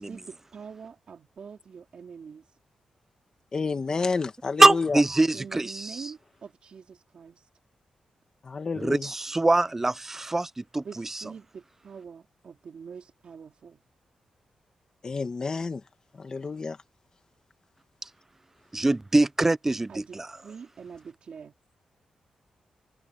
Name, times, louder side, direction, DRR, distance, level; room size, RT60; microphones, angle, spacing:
voice 1, 0.0-2.6 5.3-7.5 10.8-13.8 19.9-21.6, right 6 dB, 55° right, 4.4 m, -44 dB
voice 2, 3.5-5.0 8.4-9.1 15.0-15.8 16.2-16.8, left 4 dB, 35° left, 2.2 m, -30 dB
voice 3, 4.6-6.1 8.8-10.8 18.7-20.3, right 2 dB, 15° right, 0.5 m, -23 dB
wide cardioid pair, 135°, 2 cm